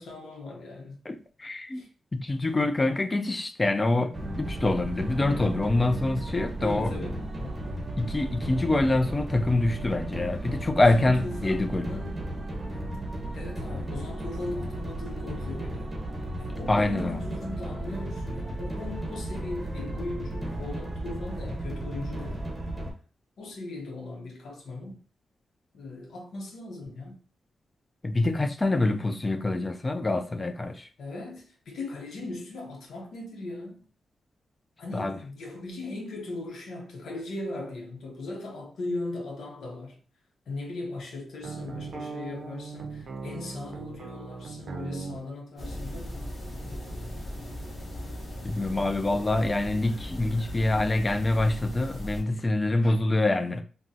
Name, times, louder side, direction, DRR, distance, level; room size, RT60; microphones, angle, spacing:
voice 1, 0.0-1.0 1.7-1.9 6.6-7.8 10.3-11.6 11.9-12.2 12.7-12.8 13.3-16.0 16.4-22.5 23.4-25.0 25.7-27.2 31.0-33.8 34.8-40.0 40.5-46.8, left 2 dB, 75° left, 0.7 m, -38 dB
voice 2, 1.1-1.8 2.1-6.9 8.0-11.9 16.7-17.2 28.0-30.9 34.9-35.2 48.4-53.6, left 2 dB, 20° left, 0.3 m, -25 dB
sound 1, 4.1-22.9, right 1 dB, 15° right, 0.8 m, -34 dB
sound 2, 41.4-45.2, right 4 dB, 70° right, 0.5 m, -38 dB
sound 3, 45.6-52.2, equal, 50° left, 0.9 m, -38 dB
3.6 x 2.0 x 2.7 m
wide cardioid pair, 110°, 0 cm